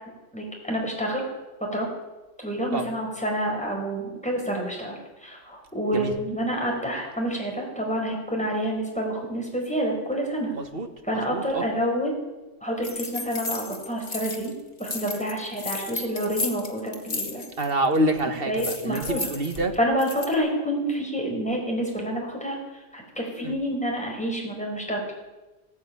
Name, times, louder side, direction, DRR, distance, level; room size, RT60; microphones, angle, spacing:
voice 1, 0.3-1.2 1.6-1.9 2.4-10.5 11.0-12.1 12.6-14.5 14.8-17.4 18.5-19.3 19.7-22.6 22.9-25.0, equal, 5° left, -1 dB, 5.0 m, -28 dB
voice 2, 10.6-10.9 11.3-11.6 17.6-19.7 23.4-23.5, right 1 dB, 60° right, 7 dB, 1.9 m, -26 dB
sound 1, 12.8-14.5 14.8-17.7 17.9-18.2 18.6-20.3, left 3 dB, 55° left, 1.9 m, -33 dB
16.5 x 10.0 x 8.7 m, 1.1 s
omnidirectional pair, 1.1 m